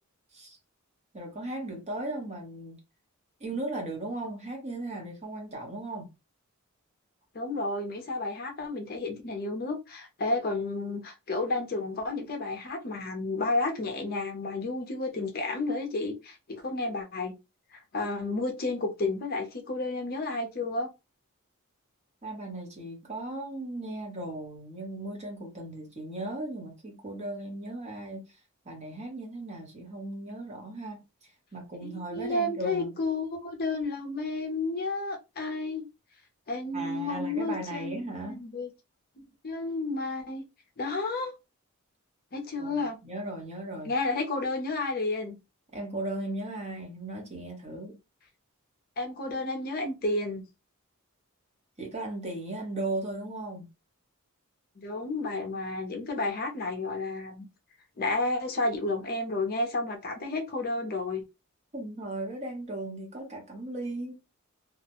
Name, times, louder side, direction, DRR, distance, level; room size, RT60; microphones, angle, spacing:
voice 1, 1.1-2.8 3.4-6.1 22.2-28.4 28.6-33.0 36.7-38.4 42.6-43.9 45.7-48.0 51.8-53.7 61.7-64.2, right 2 dB, 30° right, 0.9 m, -37 dB
voice 2, 7.3-17.4 17.7-20.9 31.8-35.8 36.5-38.7 39.4-40.4 40.8-41.3 42.3-43.0 43.8-45.4 49.0-50.5 54.8-57.5 58.0-61.2, left 2 dB, 45° left, 0.5 m, -31 dB
2.4 x 2.1 x 2.8 m
head